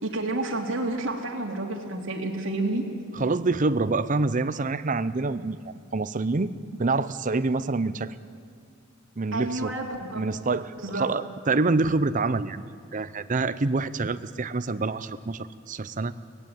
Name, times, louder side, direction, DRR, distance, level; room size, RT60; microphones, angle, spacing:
voice 1, 0.0-2.8 9.3-10.3 10.8-11.1, right 2 dB, 70° right, 0 dB, 3.0 m, -30 dB
voice 2, 3.1-5.6 5.9-6.5 6.8-8.1 9.2-9.7 10.2-12.6 12.9-16.1, right 3 dB, 40° right, 13 dB, 0.6 m, -26 dB
23.0 x 18.0 x 9.0 m, 2.3 s
head